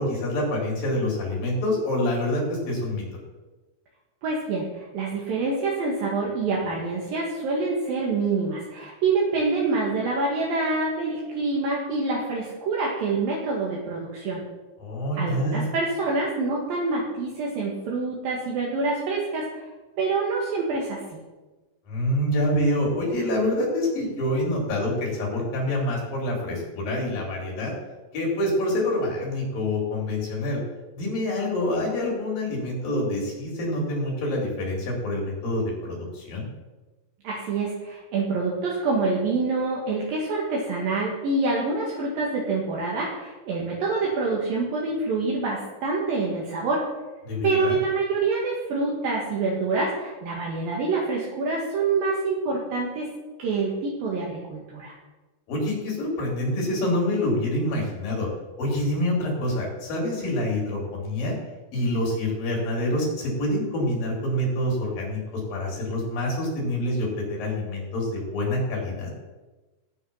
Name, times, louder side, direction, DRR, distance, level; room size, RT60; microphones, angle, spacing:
voice 1, 0.0-3.0 14.8-15.7 21.9-27.8 28.1-30.6 30.9-36.4 47.3-47.8 55.5-58.3 58.6-61.4 61.7-69.1, left 1 dB, 60° left, -2 dB, 5.6 m, -26 dB
voice 2, 4.2-14.4 15.2-19.5 20.0-21.0 37.2-46.8 47.4-53.1 53.4-54.9, right 3 dB, 65° right, -3 dB, 3.5 m, -26 dB
17.5 x 9.3 x 5.7 m, 1.2 s
omnidirectional pair, 4.6 m